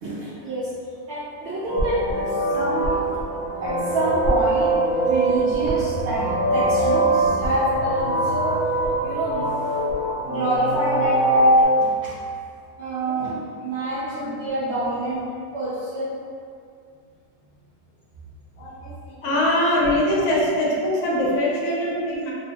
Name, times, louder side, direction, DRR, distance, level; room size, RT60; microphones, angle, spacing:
voice 1, 0.0-0.7 1.1-2.0 2.5-3.0 3.6-9.4 10.2-11.2 12.0-12.1 12.8-13.3 13.6-15.2 15.5-16.1, right 1 dB, 70° right, -10 dB, 0.7 m, -27 dB
sound 1, 1.7-11.6, right 1 dB, 55° left, 0.6 m, -22 dB
voice 2, 13.0-13.5 13.8-14.3 18.6-22.3, left 1 dB, 75° left, -4 dB, 1.0 m, -23 dB
2.7 x 2.1 x 2.7 m, 2.3 s
omnidirectional pair, 1.6 m